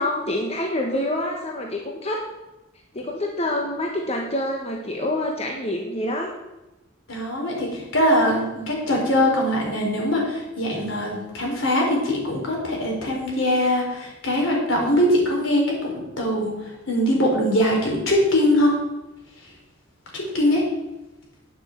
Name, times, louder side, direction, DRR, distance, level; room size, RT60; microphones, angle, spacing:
voice 1, 0.0-2.2 2.9-6.3, left 1 dB, 30° left, 1 dB, 1.2 m, -26 dB
voice 2, 7.1-16.5 16.9-18.8 20.1-20.6, left 1 dB, 70° left, -1 dB, 4.4 m, -22 dB
9.6 x 7.4 x 7.9 m, 1.0 s
head